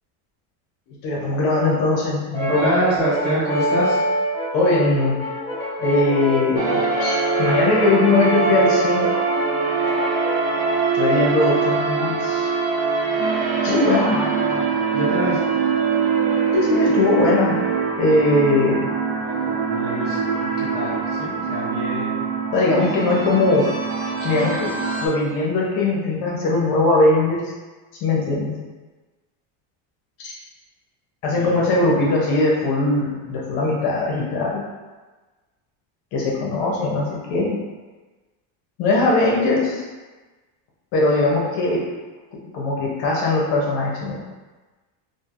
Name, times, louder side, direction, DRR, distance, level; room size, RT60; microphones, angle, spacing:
voice 1, 0.9-2.6 4.5-5.2 5.8-9.1 10.9-12.5 13.6-14.2 16.5-17.6 18.0-18.9 22.5-23.7 24.2-24.7 25.0-27.5 28.0-28.5 30.2-30.3 31.2-34.6 36.1-37.6 38.8-39.8 40.9-41.8 42.5-44.2, left 2 dB, 50° left, -3 dB, 0.7 m, -20 dB
Brass instrument, 2.3-10.9, left 1 dB, 10° left, 1.3 m, -27 dB
voice 2, 2.5-4.0 11.6-11.7 13.9-14.6 14.9-15.5 19.2-22.2 31.3-31.6, equal, 20° right, -9 dB, 0.6 m, -25 dB
sound 1, 6.6-25.1, right 5 dB, 70° right, 0.6 m, -23 dB
3.1 x 2.5 x 2.4 m, 1.3 s
cardioid pair, 170°, 49 cm